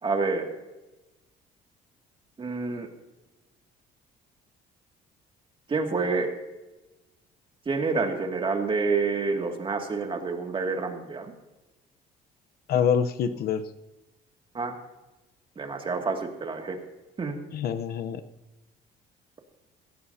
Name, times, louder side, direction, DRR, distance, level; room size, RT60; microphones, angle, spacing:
voice 1, 0.0-0.5 2.4-2.9 5.7-6.3 7.7-11.3 14.5-14.7 15.6-16.8 17.2-17.4, right 4 dB, 30° right, 3 dB, 2.3 m, -28 dB
voice 2, 12.7-13.7 17.5-18.2, left 7 dB, 65° left, 10 dB, 0.9 m, -26 dB
17.0 x 17.0 x 2.8 m, 1.1 s
cardioid pair, 110°, 17 cm